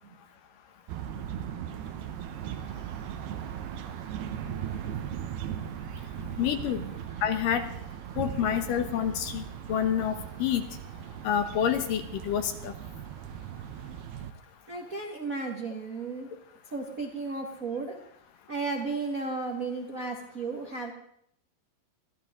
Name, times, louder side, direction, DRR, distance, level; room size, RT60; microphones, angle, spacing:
sound 1, 0.9-14.3, right 9 dB, 90° right, 3.0 m, -38 dB
voice 1, 6.4-6.8 7.2-7.7 8.2-9.4 9.7-10.1 10.4-10.6 11.2-12.7, left 9 dB, 70° left, 8 dB, 2.4 m, -27 dB
voice 2, 14.7-16.3 16.7-18.0 18.5-20.9, right 3 dB, 70° right, 1 dB, 0.8 m, -34 dB
23.5 x 15.0 x 3.7 m, 0.69 s
omnidirectional pair, 4.4 m